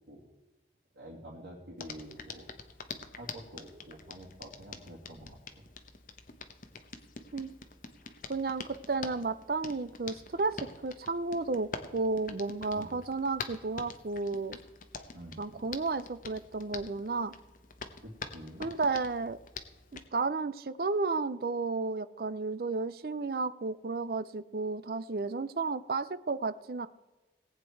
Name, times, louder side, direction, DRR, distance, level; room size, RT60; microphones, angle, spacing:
voice 1, 0.9-2.7 3.1-5.7 12.7-12.9 15.1-15.6 18.0-18.7, equal, 90° right, -5 dB, 2.5 m, -48 dB
Hands, 1.8-20.1, left 4 dB, 50° left, 1.0 m, -46 dB
voice 2, 8.3-14.6 15.4-17.3 18.6-19.4 19.9-26.9, right 3 dB, 55° right, 14 dB, 0.5 m, -33 dB
18.5 x 8.4 x 4.6 m, 1.1 s
head